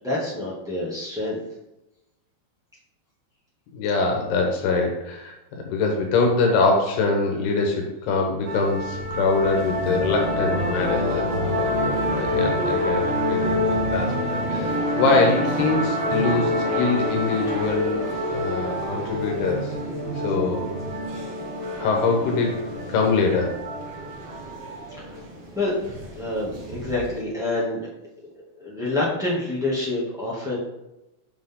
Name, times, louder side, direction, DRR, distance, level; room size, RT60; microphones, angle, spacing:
voice 1, 0.0-1.4 12.1-12.2 25.0-25.2 25.5-25.7 26.1-27.9 28.6-30.6, left 2 dB, 5° right, -8 dB, 0.4 m, -27 dB
voice 2, 3.7-5.4 5.6-11.3 12.1-18.0 18.3-19.7 20.2-20.7 21.7-22.6 22.9-23.5, left 3 dB, 85° left, 1 dB, 3.1 m, -23 dB
sound 1, 8.5-27.2, equal, 75° right, 1.3 m, -27 dB
sound 2, 8.9-12.4, left 5 dB, 55° left, 2.4 m, -41 dB
7.3 x 6.0 x 3.8 m, 0.93 s
omnidirectional pair, 4.6 m